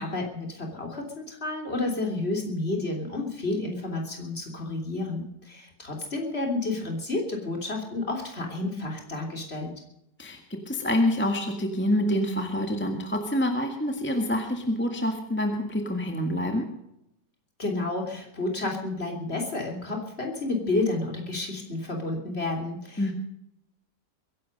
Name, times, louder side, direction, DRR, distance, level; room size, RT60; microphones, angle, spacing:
voice 1, 0.0-9.7 17.6-23.1, left 2 dB, 35° left, 1 dB, 3.5 m, -30 dB
voice 2, 10.2-16.7 23.0-23.1, left 1 dB, 5° left, 4 dB, 1.6 m, -27 dB
22.5 x 11.0 x 5.3 m, 0.82 s
omnidirectional pair, 1.9 m